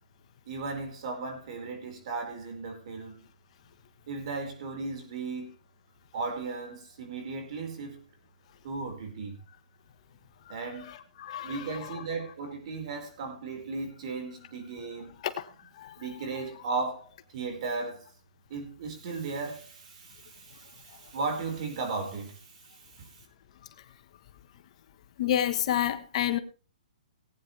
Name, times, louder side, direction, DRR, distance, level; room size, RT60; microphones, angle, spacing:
voice 1, 0.5-3.2 4.1-5.5 6.1-8.0 8.6-9.4 10.5-10.9 11.4-15.1 16.0-18.1 18.5-23.1, right 4 dB, 55° right, 5.1 m, -36 dB
voice 2, 10.6-12.0 15.2-15.4 15.8-16.1 25.2-26.4, left 11 dB, 50° left, 1.3 m, -30 dB
18.5 x 9.8 x 3.4 m
hypercardioid pair, 140°, 4 cm